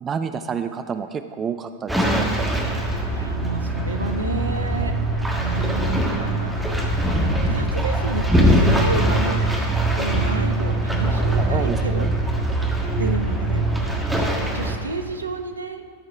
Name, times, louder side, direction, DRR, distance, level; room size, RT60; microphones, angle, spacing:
voice 1, 0.0-2.5 11.4-12.1, right 6 dB, 25° right, 9 dB, 0.4 m, -29 dB
sound 1, 1.9-14.8, right 1 dB, 5° right, 1.6 m, -22 dB
voice 2, 2.8-4.9 5.4-6.7 7.4-9.6 9.9-12.1 12.9-14.0 14.5-15.8, right 3 dB, 75° right, 7 dB, 0.7 m, -31 dB
13.5 x 4.8 x 5.6 m, 2.1 s
figure-of-eight pair, 90°, 0 cm